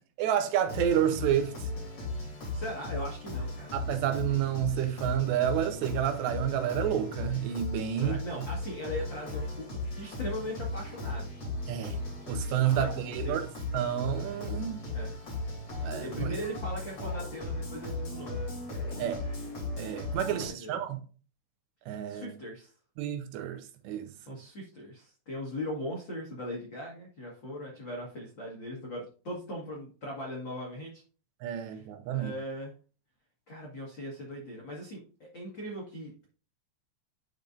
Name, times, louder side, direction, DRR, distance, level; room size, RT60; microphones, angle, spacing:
voice 1, 0.2-1.7 3.7-8.2 11.7-12.0 12.3-13.5 13.7-14.8 15.8-16.3 19.0-19.2 19.8-21.0 21.9-22.3 23.0-24.1 31.4-32.4, right 10 dB, 80° right, 3.0 m, -30 dB
sound 1, 0.7-20.5, left 2 dB, 35° left, 4.0 m, -36 dB
voice 2, 2.5-3.7 8.0-11.3 12.4-13.4 14.5-15.1 15.9-18.4 20.3-20.8 22.1-22.7 24.3-31.0 31.6-31.8 32.1-32.7 33.5-36.3, equal, 90° left, 1.0 m, -40 dB
10.5 x 5.3 x 2.6 m
omnidirectional pair, 5.1 m